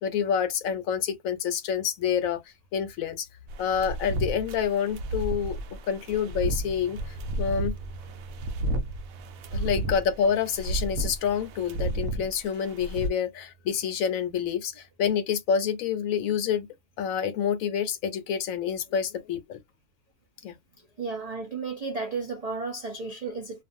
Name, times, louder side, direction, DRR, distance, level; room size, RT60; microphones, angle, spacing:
voice 1, 0.0-2.4 2.7-3.3 3.6-5.6 5.9-7.7 9.5-16.7 17.0-19.6 20.4-20.6, left 7 dB, 70° left, 1.0 m, -28 dB
sound 1, 3.5-13.1, right 1 dB, 75° right, 0.9 m, -32 dB
sound 2, 6.2-15.1, right 5 dB, 55° left, 0.5 m, -49 dB
voice 2, 21.0-23.6, right 4 dB, 55° right, 0.4 m, -33 dB
2.5 x 2.3 x 2.5 m
omnidirectional pair, 1.6 m